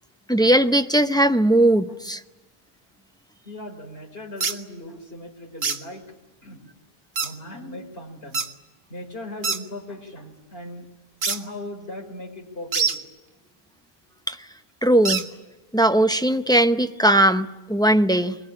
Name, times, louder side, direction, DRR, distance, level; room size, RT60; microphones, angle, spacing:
voice 1, 0.3-2.2 14.3-14.4 14.8-15.2 15.7-18.4, right 1 dB, 5° left, 8 dB, 0.6 m, -19 dB
voice 2, 3.4-6.0 6.4-6.6 7.2-8.4 8.9-10.9 11.3-12.9, left 1 dB, 65° left, 2 dB, 4.5 m, -38 dB
sound 1, 4.4-4.6 5.6-5.8 7.2-7.3 8.3-8.5 9.4-9.6 11.2-11.4 12.7-13.0 15.1-15.3, right 5 dB, 75° right, 1.5 m, -24 dB
22.0 x 21.0 x 10.0 m, 1.1 s
omnidirectional pair, 1.0 m